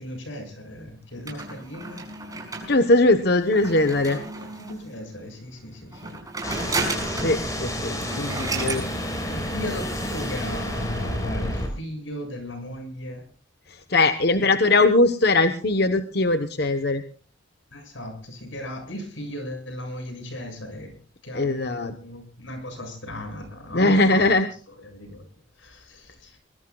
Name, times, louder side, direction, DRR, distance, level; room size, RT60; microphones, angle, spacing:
voice 1, 0.0-2.0 4.0-6.2 9.3-13.2 14.4-14.5 17.7-20.9 21.2-24.2 24.8-25.2 25.6-26.4, left 1 dB, 90° left, 6 dB, 7.2 m, -36 dB
sound 1, 1.3-4.9 5.9-7.4 7.7-7.8 8.0-8.9, right 3 dB, 20° right, 6.0 m, -32 dB
voice 2, 2.7-4.2 7.2-8.8 13.9-17.0 21.3-21.9 23.7-24.5, left 2 dB, 55° left, 9 dB, 1.1 m, -20 dB
sound 2, 6.4-11.7, equal, 20° left, 5.6 m, -30 dB
22.5 x 22.0 x 2.4 m, 0.39 s
head